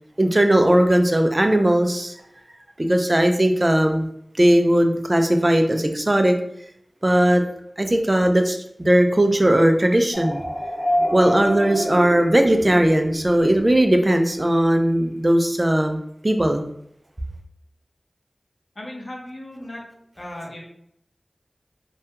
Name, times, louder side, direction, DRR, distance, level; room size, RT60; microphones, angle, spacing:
voice 1, 0.2-2.1 2.8-4.0 4.4-6.4 7.0-7.4 7.8-10.4 11.1-16.6, right 1 dB, 35° right, 5 dB, 0.3 m, -18 dB
sound 1, 10.1-13.9, equal, 15° left, 0.8 m, -27 dB
voice 2, 18.8-19.8 20.2-20.6, left 1 dB, 65° left, -2 dB, 0.7 m, -36 dB
2.2 x 2.2 x 2.8 m, 0.72 s
wide cardioid pair, 45°, 0 cm